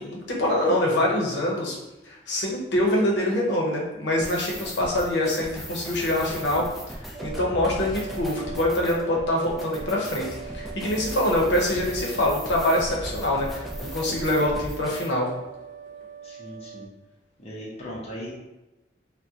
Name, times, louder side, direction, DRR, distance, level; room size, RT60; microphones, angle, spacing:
voice 1, 0.0-1.8 2.0-6.6 7.2-10.3 10.5-15.3, left 1 dB, 70° left, -2 dB, 0.7 m, -24 dB
sound 1, 4.1-15.1, equal, ahead, 0.4 m, -37 dB
sound 2, 7.1-16.9, right 7 dB, 20° right, 0.8 m, -41 dB
voice 2, 16.2-16.9 17.4-18.3, equal, 35° left, -4 dB, 0.7 m, -38 dB
3.6 x 2.1 x 2.7 m, 1.0 s
head